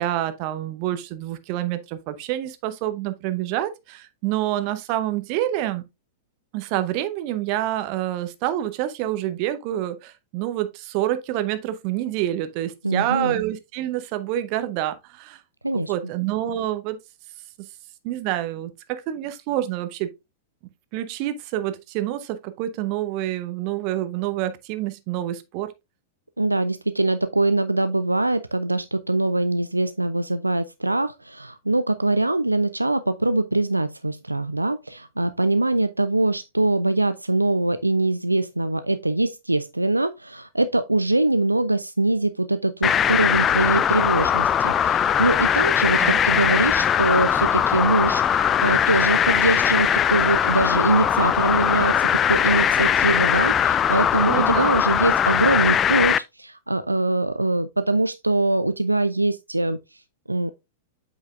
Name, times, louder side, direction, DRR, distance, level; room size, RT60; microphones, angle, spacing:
voice 1, 0.0-5.8 6.5-15.4 15.7-17.0 18.0-20.1 20.9-25.7 46.0-46.2 54.3-54.7, right 13 dB, 40° right, 0.8 m, -27 dB
voice 2, 12.8-13.4 15.6-15.9 26.4-59.8 60.3-60.5, right 2 dB, 85° right, 0.3 m, -23 dB
sound 1, 42.8-56.2, left 9 dB, 25° left, 0.3 m, -20 dB
8.1 x 5.5 x 2.4 m
figure-of-eight pair, 95°, 0 cm